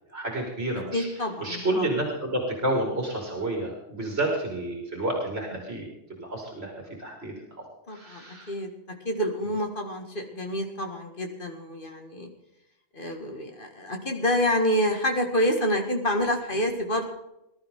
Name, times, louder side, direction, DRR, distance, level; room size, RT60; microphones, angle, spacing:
voice 1, 0.1-1.1 1.4-5.9 6.2-6.7 7.0-7.3 7.9-8.5, right 1 dB, 60° right, 0 dB, 2.8 m, -29 dB
voice 2, 0.9-1.9 7.9-8.7 9.0-12.3 12.9-17.0, equal, 45° left, 3 dB, 2.3 m, -27 dB
20.5 x 12.5 x 3.8 m, 0.87 s
omnidirectional pair, 1.2 m